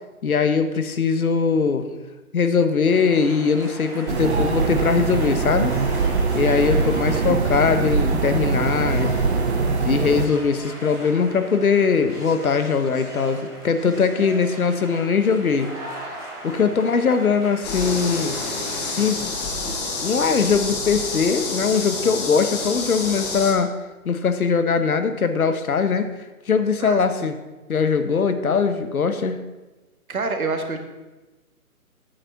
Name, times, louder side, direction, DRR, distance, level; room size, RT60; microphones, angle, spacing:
voice 1, 0.2-1.9 2.3-5.8 6.3-9.2 9.8-15.7 16.4-18.4 18.7-19.3 19.7-19.8 20.0-23.7 24.0-26.1 26.5-27.4 27.7-29.4, left 5 dB, 70° left, 9 dB, 1.2 m, -21 dB
sound 1, 2.8-19.1, equal, 5° left, 0.5 m, -39 dB
sound 2, 4.1-10.3, right 4 dB, 45° right, 0.9 m, -22 dB
voice 2, 6.4-6.8 16.5-16.8 26.8-27.0 30.1-30.8, right 3 dB, 70° right, 6 dB, 1.7 m, -28 dB
sound 3, 17.6-23.5, left 3 dB, 25° left, 1.8 m, -28 dB
8.7 x 7.9 x 5.9 m, 1.1 s
figure-of-eight pair, 145°, 45 cm